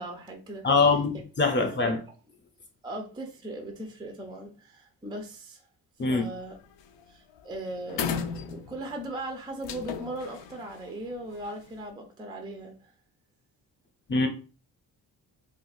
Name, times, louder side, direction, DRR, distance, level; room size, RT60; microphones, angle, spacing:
voice 1, 0.0-0.7 1.6-1.9 2.8-5.6 6.1-6.6 7.1-12.9, right 1 dB, 10° right, 0.4 m, -38 dB
voice 2, 0.6-2.0 6.0-6.3 14.1-14.3, left 4 dB, 25° left, 0.7 m, -23 dB
sound 1, 6.2-6.5 6.8-7.1 7.4-7.5 7.9-9.0 9.6-11.7, left 7 dB, 75° left, 0.5 m, -35 dB
2.5 x 2.5 x 4.0 m
cardioid pair, 135°, 43 cm